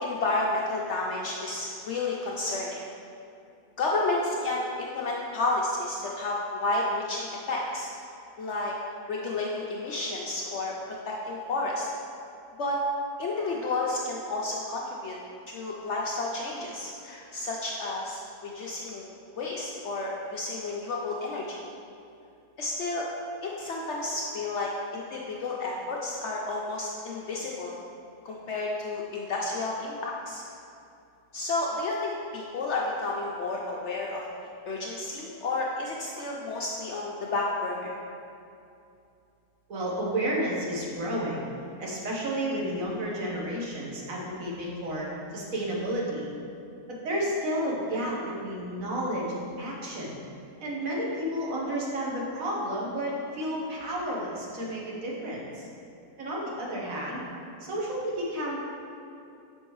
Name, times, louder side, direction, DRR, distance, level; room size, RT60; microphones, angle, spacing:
voice 1, 0.0-2.9 3.8-7.9 8.4-8.7 9.1-11.9 12.6-12.8 13.2-15.2 15.5-21.6 22.6-23.1 23.4-27.8 28.2-30.4 31.3-38.0, left 2 dB, 65° left, -3 dB, 0.7 m, -31 dB
voice 2, 39.7-41.5 41.8-46.3 46.9-50.2 50.6-55.7 56.2-57.2 57.6-58.6, equal, 65° right, -4 dB, 1.4 m, -31 dB
6.4 x 5.3 x 3.1 m, 2.6 s
omnidirectional pair, 1.6 m